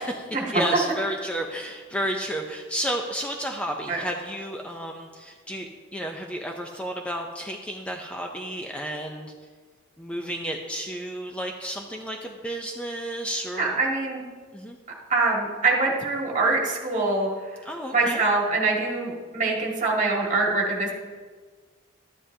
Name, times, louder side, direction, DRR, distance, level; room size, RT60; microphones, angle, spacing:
voice 1, 0.0-9.3 10.0-13.8 14.5-14.8 17.6-18.2, equal, 5° left, 2 dB, 0.5 m, -32 dB
voice 2, 13.5-14.2 15.1-17.3 17.9-20.9, right 3 dB, 40° right, -2 dB, 1.9 m, -24 dB
12.5 x 10.0 x 2.8 m, 1.5 s
head